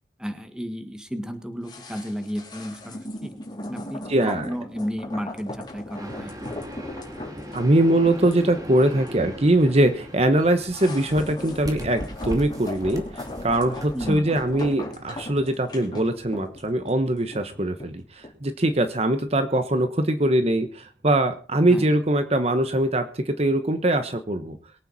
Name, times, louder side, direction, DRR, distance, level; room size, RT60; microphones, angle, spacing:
voice 1, 0.2-3.4 3.7-6.3 13.9-14.4 21.6-21.9, equal, 5° right, 7 dB, 1.6 m, -33 dB
sound 1, 1.6-18.9 19.2-19.3, left 1 dB, 25° left, 3.9 m, -38 dB
voice 2, 4.1-4.5 7.5-24.6, right 1 dB, 35° right, 9 dB, 1.1 m, -22 dB
sound 2, 6.0-13.9, equal, 20° right, 2.6 m, -38 dB
22.5 x 9.1 x 4.1 m, 0.38 s
head